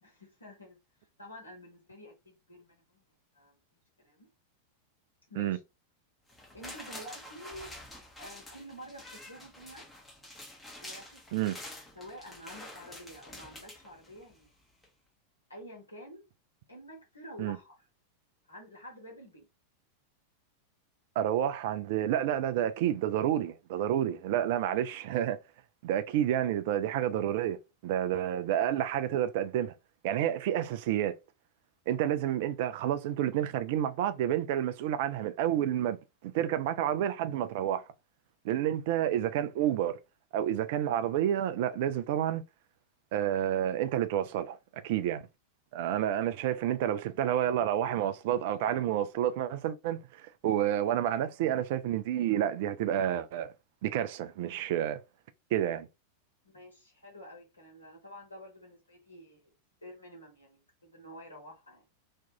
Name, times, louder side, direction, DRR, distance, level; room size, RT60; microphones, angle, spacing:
voice 1, 0.0-0.8 1.2-3.0 3.3-3.6 4.0-4.3 5.3-5.6 6.5-7.7 8.2-9.9 10.8-14.5 15.5-16.2 16.7-17.8 18.5-19.5 56.4-59.5 59.8-61.8, equal, 80° left, 1.1 m, -49 dB
sound 1, 6.3-14.4 14.8-14.9, left 1 dB, 10° left, 0.7 m, -48 dB
voice 2, 21.2-25.4 25.8-27.6 27.8-29.7 30.0-31.1 31.9-37.8 38.4-40.0 40.3-42.4 43.1-45.2 45.7-53.5 53.8-55.0 55.5-55.9, right 11 dB, 50° right, 0.3 m, -29 dB
2.5 x 2.3 x 2.7 m
figure-of-eight pair, 90°, 0 cm